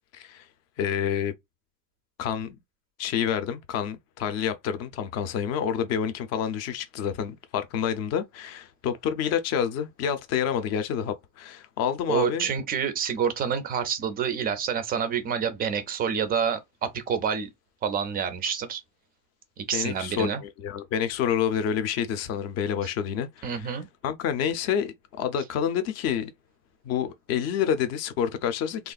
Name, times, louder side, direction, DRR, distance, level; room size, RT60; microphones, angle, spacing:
voice 1, 0.1-0.5 0.8-1.3 2.2-2.6 3.0-12.5 19.7-23.8 24.0-26.3 26.8-28.9, left 8 dB, 40° left, 0.5 m, -28 dB
voice 2, 12.1-17.5 17.8-18.8 19.6-20.4 22.8-22.9 23.4-23.9, right 7 dB, 25° right, 0.3 m, -28 dB
3.4 x 2.4 x 2.3 m
cardioid pair, 175°, 39 cm